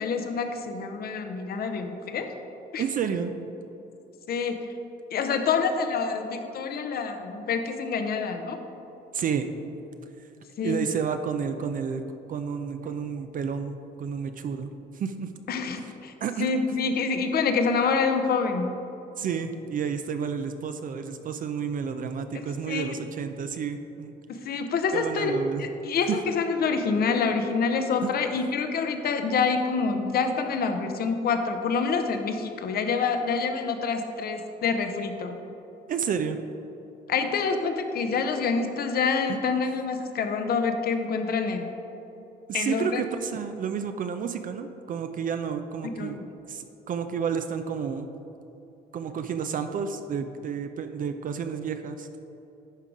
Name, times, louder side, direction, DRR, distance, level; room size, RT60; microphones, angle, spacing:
voice 1, 0.0-2.3 2.7-2.8 4.3-4.6 5.1-8.6 10.6-10.8 15.5-16.1 16.4-18.7 22.7-23.0 24.4-35.4 37.1-41.7 42.5-43.0 45.8-46.2, left 5 dB, 60° left, 6 dB, 0.8 m, -27 dB
voice 2, 2.8-3.3 9.1-9.5 10.6-12.0 12.3-14.7 14.9-15.3 16.2-16.5 19.2-24.1 24.9-25.6 26.1-26.2 28.0-28.1 35.9-36.4 39.3-39.4 42.5-46.2 46.5-48.1 48.9-52.1, right 7 dB, 50° right, 8 dB, 0.5 m, -30 dB
11.0 x 3.8 x 4.8 m, 2.9 s
cardioid pair, 85°, 18 cm